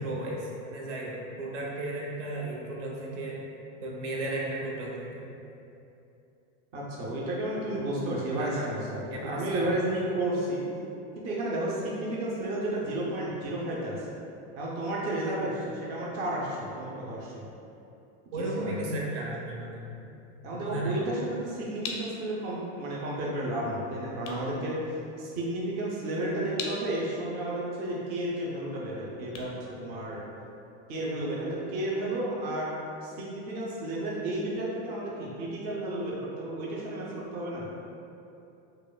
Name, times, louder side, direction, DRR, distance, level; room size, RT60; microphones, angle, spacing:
voice 1, 0.0-3.4 3.8-5.3 8.3-8.7 9.1-9.7 18.3-20.0 20.5-21.0, right 2 dB, 75° right, -3 dB, 0.8 m, -35 dB
voice 2, 6.7-10.6 11.2-14.1 14.6-17.4 18.3-18.8 20.4-24.8 25.2-30.2 30.9-32.7 33.0-37.7, right 1 dB, 30° right, -5 dB, 0.4 m, -32 dB
sound 1, 21.3-30.6, left 4 dB, 40° left, 0.4 m, -44 dB
4.7 x 2.2 x 2.3 m, 2.8 s
supercardioid pair, 155°, 36 cm